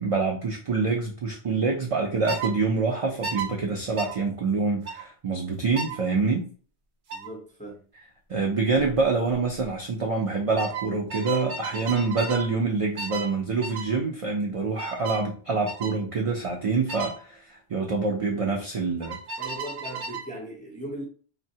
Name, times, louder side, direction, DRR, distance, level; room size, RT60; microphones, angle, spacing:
voice 1, 0.0-6.5 8.3-19.2, right 4 dB, 55° right, 0.4 m, -26 dB
sound 1, 2.3-2.5 3.2-3.5 4.0-4.2 4.9-5.0 5.8-6.0 7.1-7.3 8.8-9.0 9.3-9.7 10.6-12.5 13.0-13.3 13.6-13.9 14.8-15.3 15.7-16.0 16.9-17.2 19.0-20.3, right 5 dB, 75° right, 0.9 m, -34 dB
voice 2, 7.1-7.8 18.3-18.5 19.4-21.1, equal, 10° left, 0.5 m, -38 dB
3.5 x 2.1 x 2.7 m
omnidirectional pair, 1.1 m